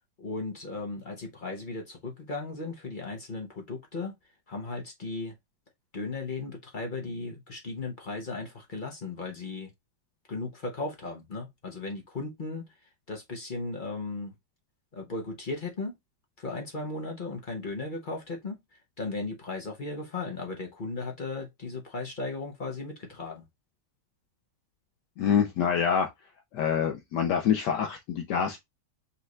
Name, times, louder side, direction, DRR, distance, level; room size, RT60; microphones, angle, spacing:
voice 1, 0.2-4.2 4.5-5.3 5.9-9.7 10.3-12.7 13.1-14.3 14.9-16.0 16.4-18.6 19.0-23.5, left 3 dB, 40° left, 0.7 m, -36 dB
voice 2, 25.2-26.1 26.5-28.6, left 7 dB, 75° left, 1.3 m, -26 dB
5.6 x 2.5 x 3.1 m
omnidirectional pair, 1.9 m